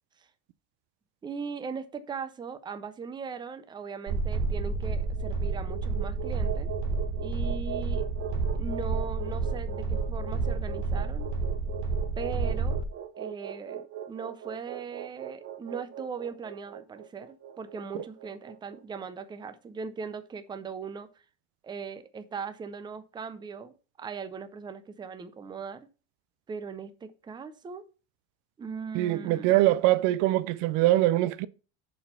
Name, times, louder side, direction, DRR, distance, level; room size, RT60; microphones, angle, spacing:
voice 1, 1.2-6.7 7.2-8.1 8.5-11.3 12.2-12.8 13.2-21.1 21.6-25.9 26.5-27.8 28.6-29.6, right 5 dB, 10° right, 0.4 m, -39 dB
sound 1, 4.1-12.8, right 3 dB, 55° right, 1.4 m, -30 dB
sound 2, 4.8-19.1, right 10 dB, 30° right, 0.8 m, -41 dB
voice 2, 28.9-31.5, right 16 dB, 75° right, 0.7 m, -23 dB
6.9 x 4.3 x 5.4 m
cardioid pair, 155°, 43 cm